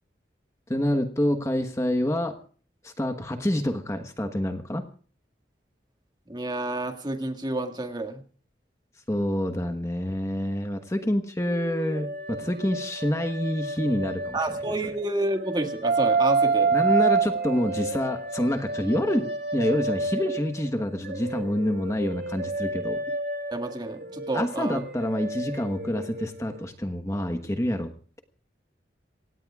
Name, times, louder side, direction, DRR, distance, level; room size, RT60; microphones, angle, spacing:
voice 1, 0.7-2.3 2.8-4.8 9.1-14.4 16.7-23.0 24.3-27.9, left 1 dB, 15° left, 6 dB, 1.2 m, -27 dB
voice 2, 6.3-8.2 14.3-16.7 23.5-24.8, right 2 dB, 25° right, 5 dB, 1.9 m, -29 dB
sound 1, 11.4-15.0 15.4-20.6 21.0-26.6, right 4 dB, 70° right, 2.9 m, -29 dB
26.5 x 17.5 x 2.4 m, 0.42 s
head